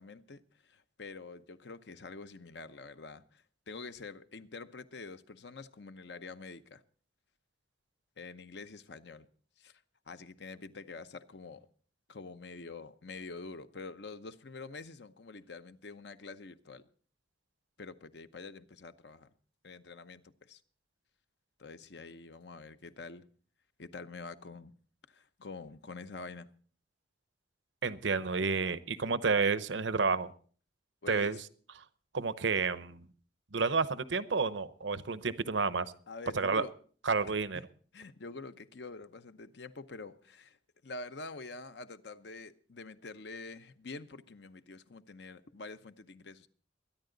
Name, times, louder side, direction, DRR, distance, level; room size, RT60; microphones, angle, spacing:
voice 1, 0.0-6.8 8.2-9.3 9.6-11.7 12.1-16.8 17.8-19.3 19.6-20.6 21.6-23.3 23.8-24.7 25.1-26.5 31.0-31.4 36.1-36.7 37.5-37.6 37.9-40.6 40.8-46.5, left 3 dB, 65° left, 0.8 m, -46 dB
voice 2, 27.8-30.3 31.1-31.4 32.1-33.1 33.5-35.9 36.3-36.6 37.0-37.6, right 4 dB, 80° right, 0.8 m, -30 dB
22.5 x 10.5 x 3.9 m
head